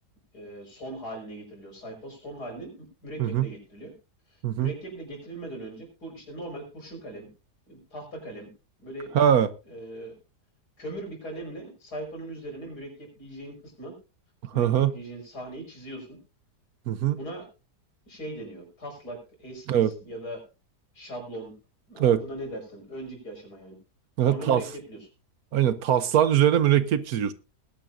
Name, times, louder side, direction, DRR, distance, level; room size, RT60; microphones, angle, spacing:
voice 1, 0.3-3.9 4.3-7.3 7.7-8.5 8.8-9.2 9.7-10.1 10.8-13.9 14.5-16.2 17.1-17.5 18.1-20.4 20.9-21.5 21.9-23.8 24.2-25.0, right 1 dB, 75° left, 1 dB, 5.9 m, -40 dB
voice 2, 9.1-9.5 14.6-14.9 16.9-17.2 19.7-19.9 22.0-22.2 24.2-24.6 25.5-27.3, right 10 dB, 70° right, 14 dB, 1.2 m, -22 dB
20.0 x 10.5 x 2.6 m, 0.29 s
omnidirectional pair, 1.7 m